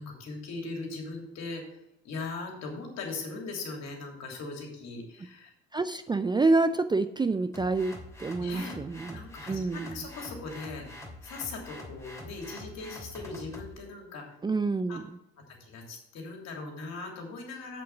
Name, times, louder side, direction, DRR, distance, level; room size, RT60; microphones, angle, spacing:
voice 1, 0.0-5.5 8.4-8.7 9.1-14.3 14.9-15.0 15.4-17.8, left 3 dB, 60° left, 1 dB, 3.1 m, -40 dB
voice 2, 5.7-7.9 8.2-9.2 9.5-10.0 14.4-15.0, right 3 dB, 15° right, 11 dB, 0.4 m, -27 dB
sound 1, 7.5-13.7, left 1 dB, 10° left, 2.9 m, -45 dB
7.7 x 7.0 x 6.0 m, 0.81 s
hypercardioid pair, 65°, 31 cm